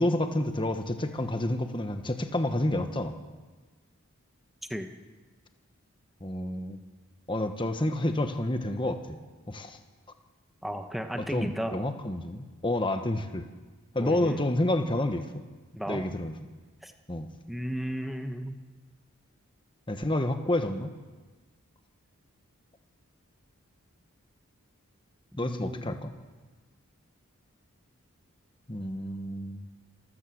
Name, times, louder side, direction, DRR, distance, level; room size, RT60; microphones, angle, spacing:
voice 1, 0.0-3.2 6.2-6.8 7.3-9.2 9.5-9.8 11.1-13.5 13.9-15.4 15.9-16.3 17.1-17.3 19.9-20.9 25.4-26.1 28.7-29.7, left 1 dB, 20° left, 7 dB, 1.2 m, -29 dB
voice 2, 10.6-11.7 14.0-14.4 15.8-16.0 16.8-16.9 17.5-18.5 25.3-26.0, equal, ahead, 5 dB, 1.1 m, -34 dB
27.0 x 13.0 x 7.9 m, 1.3 s
head